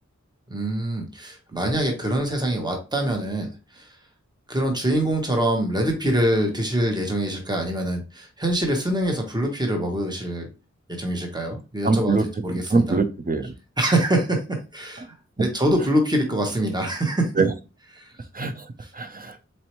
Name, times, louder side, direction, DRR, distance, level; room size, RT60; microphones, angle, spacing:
voice 1, 0.5-4.0 4.5-10.5 10.9-13.0 13.8-17.3 18.0-18.1 18.8-18.9, right 1 dB, 15° right, 1.1 m, -24 dB
voice 2, 11.8-12.2 12.7-13.5 17.4-17.5 18.3-18.7 18.9-19.4, right 3 dB, 30° right, 0.6 m, -22 dB
4.3 x 2.6 x 3.0 m
wide cardioid pair, 40°, 29 cm